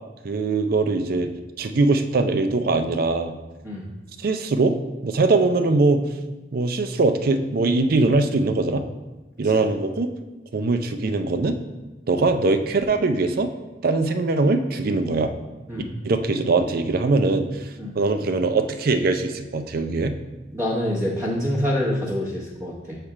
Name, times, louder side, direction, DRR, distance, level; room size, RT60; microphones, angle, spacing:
voice 1, 0.2-1.3 1.6-3.3 4.2-4.8 5.0-6.0 6.5-8.8 9.4-10.1 10.5-11.5 12.1-13.5 13.8-15.3 16.0-17.7 17.9-20.1, right 3 dB, 55° right, 8 dB, 0.5 m, -21 dB
voice 2, 20.5-23.0, left 1 dB, 15° right, -5 dB, 0.9 m, -26 dB
7.1 x 3.3 x 4.8 m, 1.2 s
head